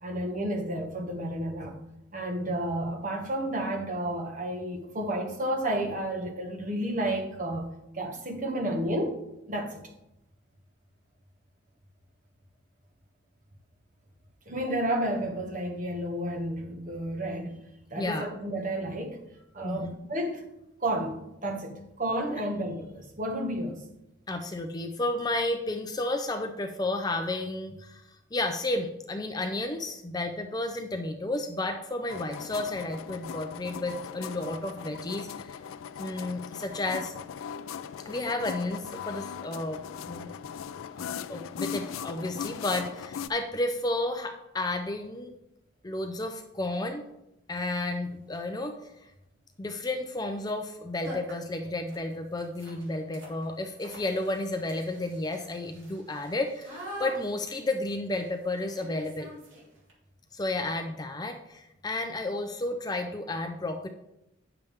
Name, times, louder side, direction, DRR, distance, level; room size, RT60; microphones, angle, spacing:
voice 1, 0.0-1.8 2.1-7.7 7.9-9.2 9.5-9.8 14.5-17.5 17.9-19.2 19.5-20.5 20.8-23.8, right 1 dB, 40° right, 1.4 m, -31 dB
voice 2, 18.0-18.3 19.6-19.9 24.3-28.0 28.3-35.6 36.0-37.1 38.0-40.3 41.0-45.3 45.8-47.0 47.5-48.9 49.6-59.3 60.3-63.9, left 2 dB, 20° left, 0.5 m, -32 dB
sound 1, 32.1-43.3, left 8 dB, 90° left, 0.4 m, -39 dB
sound 2, 47.6-47.7 48.2-48.6 50.3-50.5 50.7-50.8 51.0-59.9, equal, 70° right, 3.1 m, -45 dB
9.3 x 6.8 x 3.6 m
head